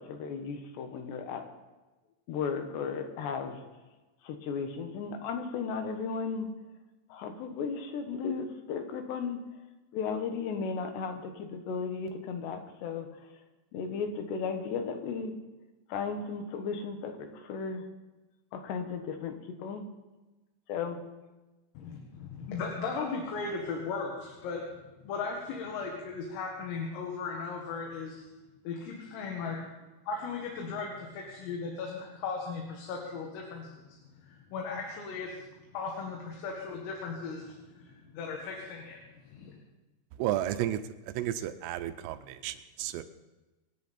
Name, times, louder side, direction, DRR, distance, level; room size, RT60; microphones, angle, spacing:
voice 1, 0.0-1.4 2.3-3.6 4.2-6.5 7.1-9.4 9.9-13.1 13.7-15.3 15.9-17.8 18.5-19.3 19.6-19.9 20.7-21.0, left 5 dB, 70° left, 6 dB, 3.1 m, -35 dB
voice 2, 21.8-24.7 25.0-28.2 28.7-29.6 30.1-35.5 35.7-39.0 39.2-39.5, left 4 dB, 85° left, 0 dB, 4.5 m, -37 dB
voice 3, 40.2-43.0, right 12 dB, 85° right, 9 dB, 3.3 m, -33 dB
26.0 x 11.0 x 4.3 m, 1.1 s
omnidirectional pair, 5.9 m